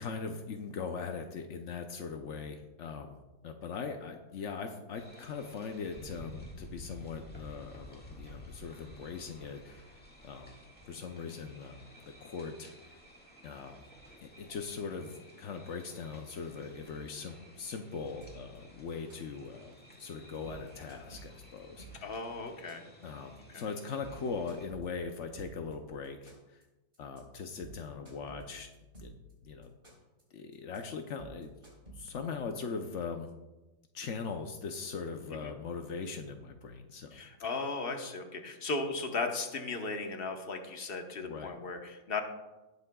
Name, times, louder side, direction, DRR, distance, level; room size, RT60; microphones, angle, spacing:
voice 1, 0.0-3.2 3.4-10.6 10.9-13.0 13.4-13.8 14.4-19.7 20.0-22.1 23.0-26.6 27.0-28.7 29.0-29.1 29.4-29.7 30.3-31.5 31.9-33.3 33.9-37.2 41.2-41.6, left 5 dB, 70° left, 5 dB, 0.7 m, -40 dB
sound 1, 4.9-24.7, equal, 5° left, 1.5 m, -53 dB
sound 2, 18.2-18.6 18.9-19.5 19.8-20.0 20.3-22.2 22.5-23.0 23.4-23.6 23.9-25.7 26.0-26.6 26.9-27.2 27.5-29.3 29.6-30.2 30.5-30.8 31.1-32.3, right 3 dB, 30° right, 3.9 m, -51 dB
voice 2, 22.0-22.9 23.5-23.6 35.3-35.5 37.1-42.2, left 3 dB, 35° left, 4 dB, 1.0 m, -36 dB
18.5 x 8.4 x 2.3 m, 1.1 s
omnidirectional pair, 2.1 m